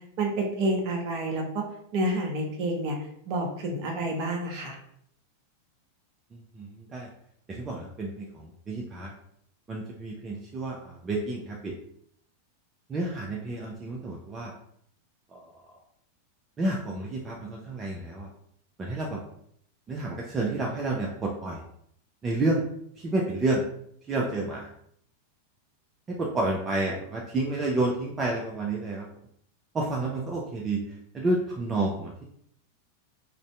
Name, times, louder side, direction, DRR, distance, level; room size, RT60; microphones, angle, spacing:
voice 1, 0.2-1.6 1.9-3.0 3.3-4.8, right 1 dB, 45° right, 0 dB, 0.8 m, -29 dB
voice 2, 6.3-7.1 7.5-9.1 9.7-11.7 12.9-14.5 15.3-15.4 16.6-18.3 18.8-19.2 19.9-21.6 22.2-22.6 23.0-23.6 24.1-24.7 26.1-29.0 29.7-30.8 31.1-32.2, right 2 dB, 20° right, -2 dB, 0.4 m, -30 dB
2.6 x 2.5 x 3.1 m, 0.69 s
figure-of-eight pair, 90°, 0 cm